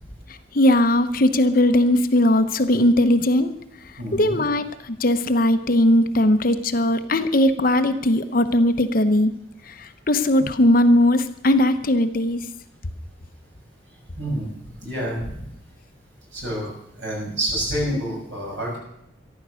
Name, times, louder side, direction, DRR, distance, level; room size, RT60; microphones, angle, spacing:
voice 1, 0.5-3.5 4.1-9.3 9.7-12.5, left 1 dB, 45° left, 9 dB, 0.9 m, -19 dB
voice 2, 4.0-4.4 14.1-14.5 14.8-15.4 16.3-16.7 17.0-18.8, right 1 dB, 75° right, -2 dB, 6.8 m, -28 dB
14.0 x 12.0 x 6.3 m, 0.79 s
head